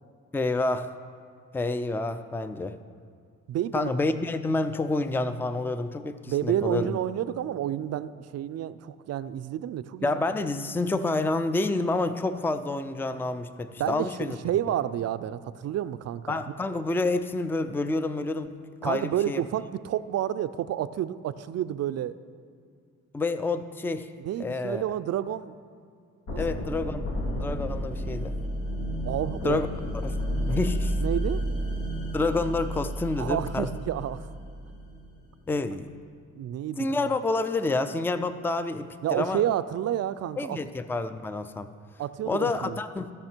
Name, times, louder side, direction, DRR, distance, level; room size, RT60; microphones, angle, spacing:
voice 1, 0.3-0.9 1.5-2.8 3.7-7.0 10.0-14.4 16.3-18.5 18.8-19.4 23.1-24.1 24.4-24.8 26.4-28.4 29.4-29.7 30.0-30.2 30.5-31.0 32.1-33.7 35.5-35.9 36.8-39.4 40.4-41.7 42.3-43.1, left 2 dB, 5° left, 11 dB, 0.4 m, -28 dB
voice 2, 3.5-3.9 6.3-10.2 13.8-16.4 18.8-22.2 24.2-25.6 26.3-26.4 29.0-29.6 31.0-31.4 33.2-34.3 34.7-34.8 36.3-37.1 39.0-40.6 42.0-42.8, right 11 dB, 55° right, 14 dB, 0.4 m, -30 dB
sound 1, 26.3-35.1, equal, 80° left, 2.2 m, -31 dB
16.0 x 5.8 x 4.5 m, 2.3 s
cardioid pair, 90°, 30 cm